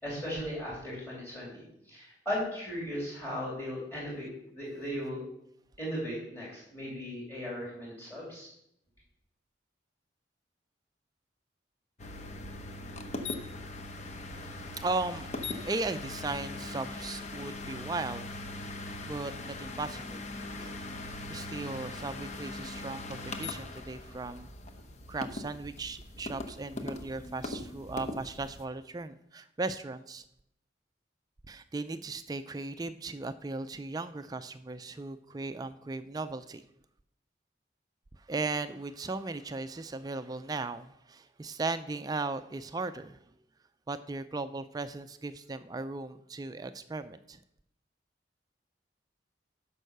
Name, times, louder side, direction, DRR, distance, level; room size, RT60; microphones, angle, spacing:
voice 1, 0.0-5.2 5.8-8.5, equal, 15° left, -5 dB, 3.1 m, -37 dB
sound 1, 12.0-28.6, left 2 dB, 40° left, 0.8 m, -40 dB
voice 2, 14.3-18.3 18.7-24.5 25.1-30.2 31.5-36.6 38.3-43.2 43.9-47.4, right 3 dB, 20° right, 11 dB, 0.4 m, -37 dB
11.0 x 5.5 x 6.6 m, 0.78 s
head